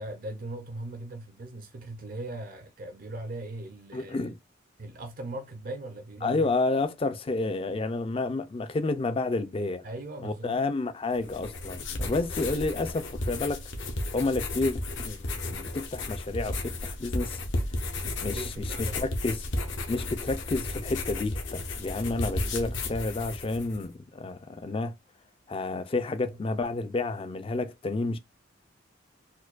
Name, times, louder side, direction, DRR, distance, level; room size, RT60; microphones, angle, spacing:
voice 1, 0.0-4.3 4.8-6.5 9.8-10.6 18.2-19.0, right 2 dB, 45° right, 0.5 m, -39 dB
voice 2, 3.9-4.4 6.2-9.9 10.2-13.6 14.1-17.4 18.2-18.5 18.8-19.4 19.9-24.9 25.5-28.2, left 3 dB, 30° left, 0.4 m, -30 dB
sound 1, 11.1-23.9, left 2 dB, 75° left, 0.8 m, -34 dB
4.4 x 2.2 x 2.4 m
head